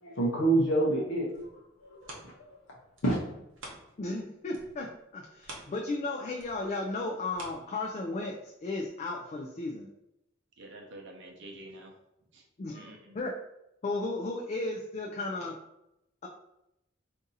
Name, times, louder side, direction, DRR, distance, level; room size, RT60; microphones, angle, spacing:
voice 1, 0.0-1.5 1.8-2.6 3.0-3.2, right 2 dB, 85° left, -4 dB, 0.7 m, -28 dB
sound 1, 1.2-4.2 4.5-8.3 8.8-8.9, right 1 dB, 85° right, 0.9 m, -50 dB
voice 2, 4.0-9.9 12.6-13.4 13.8-15.6, left 2 dB, 35° left, 0 dB, 0.3 m, -35 dB
voice 3, 10.6-11.9 12.3-12.4 12.7-13.2, right 1 dB, 65° right, 1 dB, 0.6 m, -47 dB
2.6 x 2.6 x 3.9 m, 0.84 s
head